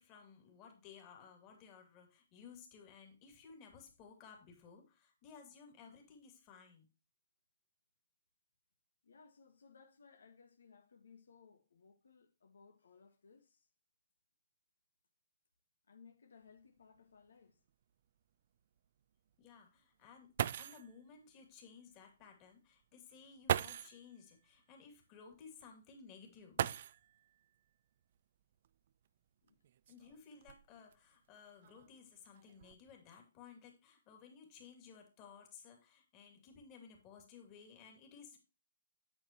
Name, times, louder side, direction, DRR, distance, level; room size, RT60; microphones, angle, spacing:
voice 1, 0.0-6.9 19.4-20.3 20.6-26.6 29.9-38.4, left 6 dB, 25° left, 2.6 m, -57 dB
voice 2, 9.0-13.7 15.9-17.6 29.4-29.6, left 5 dB, 85° left, 1.7 m, -62 dB
sound 1, 16.5-16.6 17.0-17.1 17.7-17.8 20.0-20.1 20.4-20.9 22.2-22.3 23.4-24.0 26.5-27.3 28.6-28.7 29.5-30.9 31.6-32.0 32.3-32.7, right 10 dB, 50° right, 0.4 m, -38 dB
8.8 x 8.3 x 3.0 m
hypercardioid pair, 160°, 0 cm